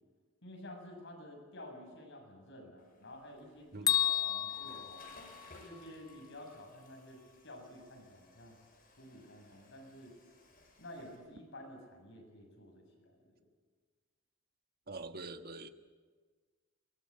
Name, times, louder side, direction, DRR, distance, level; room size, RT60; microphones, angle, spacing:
voice 1, 0.4-5.1 5.6-8.6 9.0-10.2 10.8-13.3, left 1 dB, 65° left, 1 dB, 7.4 m, -51 dB
Water / Toilet flush, 2.8-11.2, left 2 dB, 45° left, 6.8 m, -60 dB
Bell, 3.9-5.9, left 11 dB, 20° left, 0.6 m, -33 dB
voice 2, 14.9-15.7, right 3 dB, 50° right, 7 dB, 1.4 m, -44 dB
23.5 x 21.0 x 8.8 m, 1.5 s
head